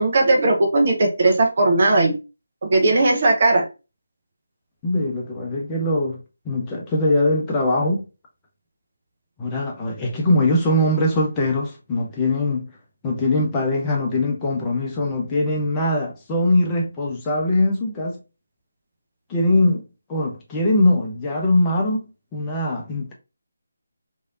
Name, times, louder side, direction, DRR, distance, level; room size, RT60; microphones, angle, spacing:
voice 1, 0.0-2.1 2.6-3.6, right 2 dB, 45° right, 0.8 m, -17 dB
voice 2, 4.8-6.2 6.4-8.0 9.4-12.7 13.0-18.2 19.3-19.8 20.1-22.1 22.3-23.1, left 1 dB, 15° left, 0.7 m, -21 dB
3.1 x 2.7 x 2.4 m
figure-of-eight pair, 155°, 0 cm